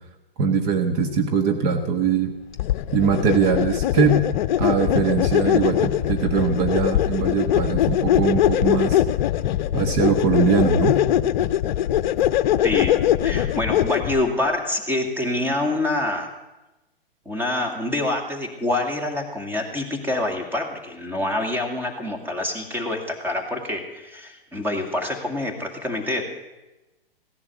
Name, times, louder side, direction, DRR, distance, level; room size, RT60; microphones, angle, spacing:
voice 1, 0.4-2.3 2.9-4.2 4.6-9.0 9.7-11.0, right 6 dB, 45° right, 6 dB, 1.4 m, -21 dB
sound 1, 2.6-14.2, left 12 dB, 50° left, 0.7 m, -21 dB
voice 2, 12.6-16.3 17.3-26.2, left 1 dB, 5° right, 3 dB, 2.2 m, -26 dB
16.5 x 11.0 x 7.1 m, 1.0 s
hypercardioid pair, 125°, 29 cm